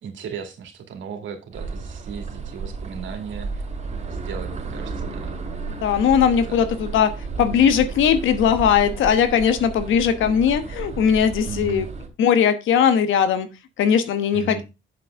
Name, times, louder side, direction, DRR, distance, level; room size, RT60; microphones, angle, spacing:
voice 1, 0.0-3.6 4.1-5.4 6.5-6.6 11.4-11.9 14.3-14.6, right 6 dB, 75° right, 5 dB, 2.5 m, -36 dB
sound 1, 1.5-12.1, right 4 dB, 35° right, 2.8 m, -33 dB
voice 2, 5.8-11.8 12.2-13.5 13.8-14.6, left 8 dB, 80° left, 10 dB, 1.1 m, -19 dB
7.7 x 7.5 x 3.6 m, 0.26 s
cardioid pair, 90°, 20 cm